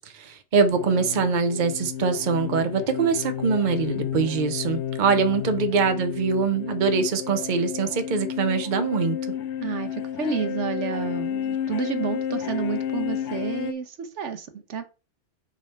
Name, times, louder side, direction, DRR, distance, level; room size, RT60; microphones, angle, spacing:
voice 1, 0.1-9.2, right 5 dB, 45° right, 8 dB, 0.9 m, -23 dB
sound 1, 0.7-13.7, left 9 dB, 80° left, 0.9 m, -31 dB
voice 2, 9.6-14.9, right 6 dB, 85° right, 8 dB, 1.2 m, -30 dB
7.4 x 3.5 x 4.3 m, 0.32 s
omnidirectional pair, 1.2 m